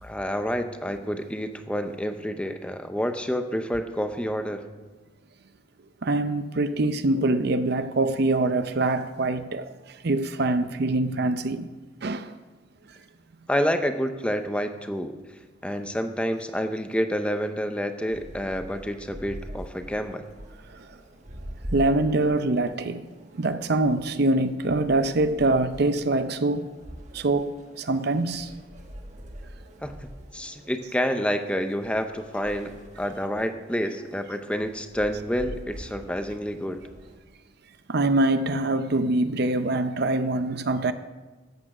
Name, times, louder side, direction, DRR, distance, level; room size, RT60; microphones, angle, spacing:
voice 1, 0.0-4.6 13.5-15.1 15.6-20.2 29.8-36.8, equal, 5° left, 0.6 m, -28 dB
voice 2, 6.0-11.7 12.0-12.3 20.7-21.0 21.7-23.1 23.3-26.7 27.1-28.5 37.9-40.9, right 2 dB, 50° right, 0.6 m, -24 dB
sound 1, 18.1-37.2, equal, 35° right, 1.5 m, -44 dB
13.5 x 8.6 x 6.1 m
head